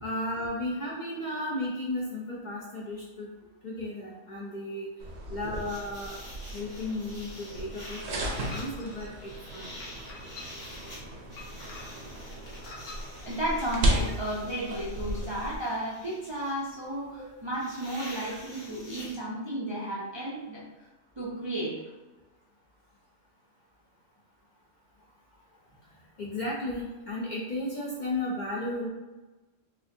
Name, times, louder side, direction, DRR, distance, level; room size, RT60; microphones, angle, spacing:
voice 1, 0.0-3.3 3.6-4.9 5.3-6.1 6.5-8.2 8.5-9.7 26.2-28.9, left 1 dB, 50° left, -4 dB, 0.6 m, -34 dB
sound 1, 5.0-15.6, right 1 dB, 65° right, 0.9 m, -35 dB
sound 2, 5.4-19.2, left 1 dB, 70° left, 1.5 m, -47 dB
sound 3, 8.5-9.1 9.8-10.7 11.4-12.1 12.6-13.0, left 3 dB, 85° left, 1.1 m, -45 dB
voice 2, 13.2-20.6 21.2-21.7, right 1 dB, 40° right, -7 dB, 0.4 m, -33 dB
4.2 x 2.5 x 2.6 m, 1.2 s
omnidirectional pair, 1.3 m